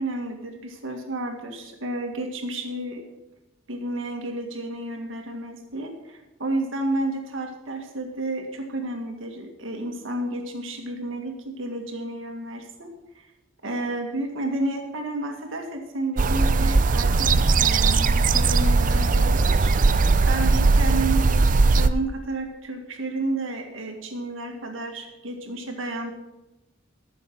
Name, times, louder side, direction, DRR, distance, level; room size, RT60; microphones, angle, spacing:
voice 1, 0.0-3.0 3.7-12.9 13.2-13.3 13.6-19.8 20.3-26.1, right 2 dB, 75° right, 3 dB, 2.0 m, -31 dB
sound 1, 16.2-21.9, right 3 dB, 45° right, 0.5 m, -19 dB
14.0 x 7.0 x 6.0 m, 1.0 s
head